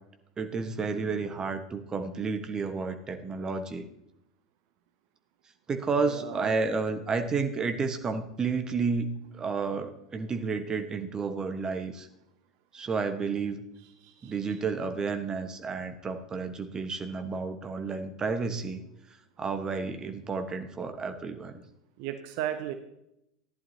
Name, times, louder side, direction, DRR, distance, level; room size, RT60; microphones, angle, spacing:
voice 1, 0.4-3.9 5.7-12.1 12.7-13.6 14.2-18.8 19.4-21.6, right 4 dB, 25° right, 7 dB, 1.3 m, -31 dB
voice 2, 6.0-6.5 14.0-14.3 22.0-22.7, right 11 dB, 50° right, 8 dB, 0.8 m, -35 dB
15.0 x 11.0 x 2.8 m, 0.81 s
figure-of-eight pair, 80°, 3 cm